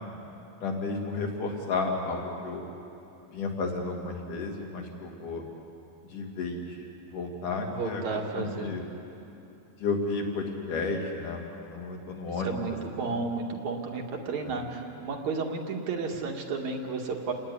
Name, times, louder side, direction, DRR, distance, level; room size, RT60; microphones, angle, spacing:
voice 1, 0.6-2.6 3.3-5.4 6.1-6.8 7.1-8.8 9.8-12.8 13.1-13.2, left 3 dB, 60° left, 1 dB, 4.3 m, -32 dB
voice 2, 7.7-8.7 12.4-17.3, right 4 dB, 55° right, 2 dB, 3.1 m, -32 dB
29.0 x 19.0 x 9.9 m, 2.9 s
omnidirectional pair, 4.3 m